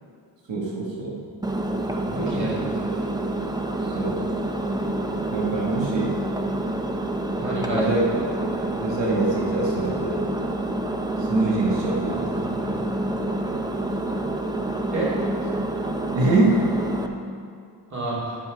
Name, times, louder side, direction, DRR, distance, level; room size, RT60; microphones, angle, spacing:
voice 1, 0.5-1.2 3.8-4.2 5.3-6.2 7.7-8.0 8.8-10.2 11.2-13.0 16.1-16.6, right 2 dB, 85° right, -4 dB, 1.5 m, -24 dB
Engine, 1.4-17.1, right 1 dB, 10° right, 0.6 m, -28 dB
voice 2, 2.0-3.0 7.4-7.9 8.5-8.7 14.9-15.1 17.9-18.4, right 2 dB, 40° right, -7 dB, 2.4 m, -28 dB
10.5 x 5.5 x 5.0 m, 2.3 s
wide cardioid pair, 90°, 42 cm